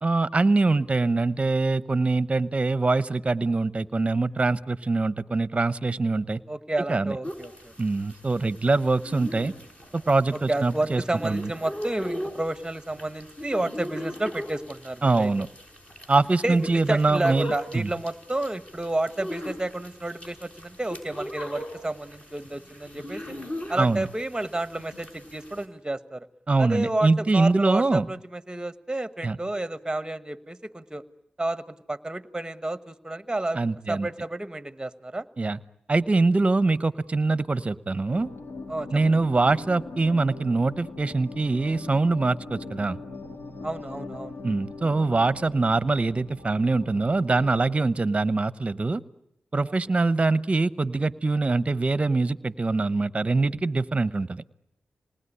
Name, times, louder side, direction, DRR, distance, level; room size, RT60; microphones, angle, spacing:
voice 1, 0.0-6.4 6.9-7.2 7.8-9.5 9.9-11.5 15.0-15.5 16.1-17.9 23.8-24.1 26.5-28.1 29.2-29.4 33.5-34.1 35.4-35.6 35.9-38.3 38.9-43.0 44.4-49.0 49.5-54.4, right 3 dB, 30° right, 15 dB, 0.9 m, -23 dB
voice 2, 6.5-7.7 10.3-15.3 16.4-23.2 23.7-26.3 26.6-31.0 31.4-33.6 33.9-35.3 38.7-38.9 43.6-44.3, right 2 dB, 15° right, 13 dB, 1.2 m, -30 dB
sound 1, 7.2-25.7, equal, 30° left, 6.1 m, -39 dB
sound 2, 38.1-47.7, left 3 dB, 60° left, 2.4 m, -41 dB
27.0 x 19.5 x 9.8 m, 0.83 s
cardioid pair, 70°, 4 cm